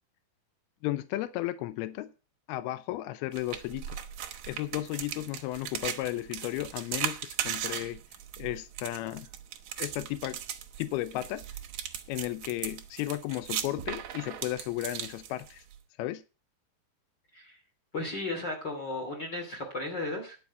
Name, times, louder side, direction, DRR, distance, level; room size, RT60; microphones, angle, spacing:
voice 1, 0.8-2.1 2.5-4.0 4.5-8.0 8.4-9.3 9.8-10.4 10.8-11.4 12.1-15.6 16.0-16.2, left 15 dB, 80° left, 13 dB, 2.5 m, -34 dB
sound 1, 3.3-15.8, right 10 dB, 70° right, 1.7 m, -38 dB
voice 2, 17.9-20.4, left 2 dB, 30° left, 1 dB, 2.8 m, -35 dB
10.5 x 5.6 x 8.1 m, 0.32 s
omnidirectional pair, 4.7 m